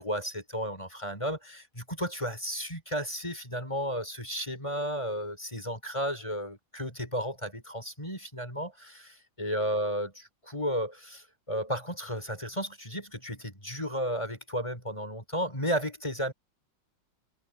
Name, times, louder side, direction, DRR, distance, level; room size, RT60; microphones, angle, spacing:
voice 1, 0.0-16.3, equal, 15° left, 5.7 m, -33 dB
omnidirectional pair, 2.1 m